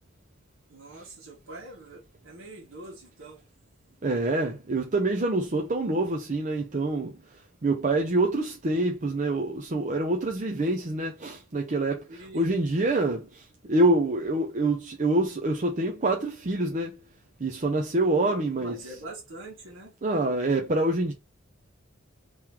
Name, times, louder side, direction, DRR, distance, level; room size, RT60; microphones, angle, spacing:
voice 1, 0.7-3.4 12.1-12.5 18.1-19.9, right 2 dB, 75° right, 1.7 m, -44 dB
voice 2, 4.0-7.1 7.6-17.0 17.4-18.8 20.0-21.1, right 2 dB, 40° right, 0.6 m, -26 dB
3.8 x 3.1 x 4.3 m
head